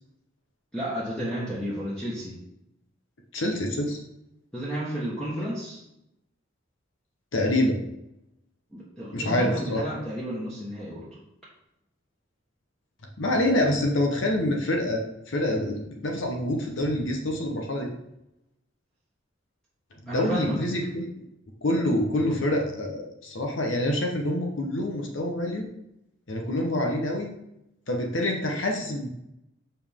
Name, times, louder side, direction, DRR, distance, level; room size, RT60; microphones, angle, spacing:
voice 1, 0.7-2.4 4.5-5.8 8.7-11.1 20.1-20.6, equal, 5° left, -8 dB, 1.4 m, -32 dB
voice 2, 3.3-4.0 7.3-7.8 9.1-9.8 13.2-17.9 20.1-21.2 21.6-25.6 26.3-27.3 27.9-29.1, left 1 dB, 70° left, 1 dB, 1.0 m, -26 dB
7.0 x 5.3 x 3.6 m, 0.83 s
head